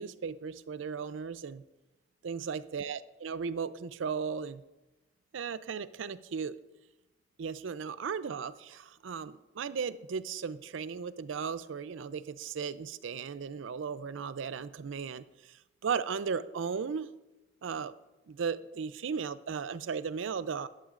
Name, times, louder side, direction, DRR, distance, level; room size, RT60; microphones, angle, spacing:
voice 1, 0.0-1.6 2.2-4.6 5.3-6.6 7.4-15.2 15.8-17.1 17.6-17.9 18.3-20.7, right 6 dB, 80° right, 16 dB, 0.4 m, -36 dB
13.0 x 10.5 x 2.5 m, 1.0 s
head